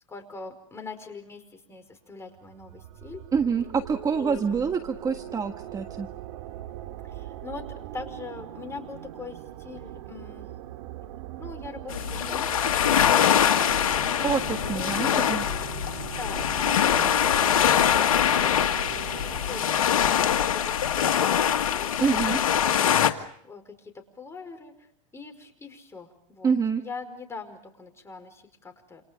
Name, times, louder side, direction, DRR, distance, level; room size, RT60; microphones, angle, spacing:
voice 1, 0.1-3.2 4.2-4.7 7.0-10.5 11.4-14.3 14.6-15.3 16.2-18.8 19.3-26.5 26.8-29.0, left 4 dB, 15° left, 5 dB, 5.1 m, -43 dB
sound 1, 2.4-20.4, right 12 dB, 70° right, 2.2 m, -41 dB
voice 2, 3.3-6.1 14.2-15.5 22.0-22.4 26.4-26.8, right 6 dB, 20° right, 7 dB, 1.4 m, -26 dB
sound 2, 11.9-23.1, left 9 dB, 90° left, 1.8 m, -23 dB
28.5 x 28.5 x 5.2 m, 0.66 s
hypercardioid pair, 115°, 18 cm